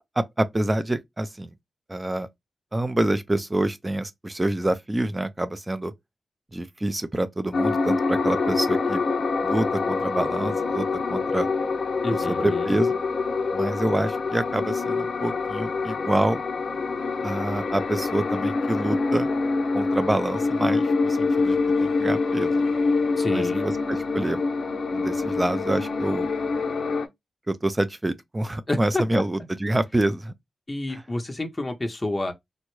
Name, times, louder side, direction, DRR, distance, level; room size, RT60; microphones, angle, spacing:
voice 1, 0.2-1.5 1.9-2.3 2.7-5.9 6.5-9.0 9.4-11.5 12.3-13.0 13.5-16.4 17.2-19.3 19.7-22.6 23.3-24.4 24.9-26.3 27.5-30.3, right 1 dB, 20° right, 0.4 m, -27 dB
sound 1, 7.5-27.1, left 4 dB, 65° left, 0.6 m, -25 dB
voice 2, 12.0-12.8 23.2-23.7 28.7-29.2 30.7-32.3, left 1 dB, 20° left, 0.7 m, -29 dB
3.6 x 2.1 x 3.0 m
cardioid pair, 90°, 0 cm